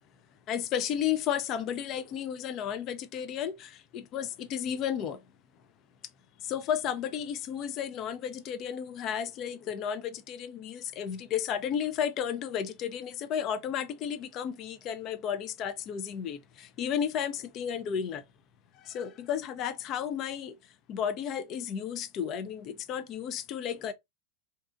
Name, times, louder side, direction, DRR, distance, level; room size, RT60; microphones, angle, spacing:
voice 1, 0.5-5.2 6.4-18.2 18.8-20.6 20.9-23.9, left 8 dB, 40° left, 0.4 m, -33 dB
2.8 x 2.3 x 2.3 m
figure-of-eight pair, 90°, 0 cm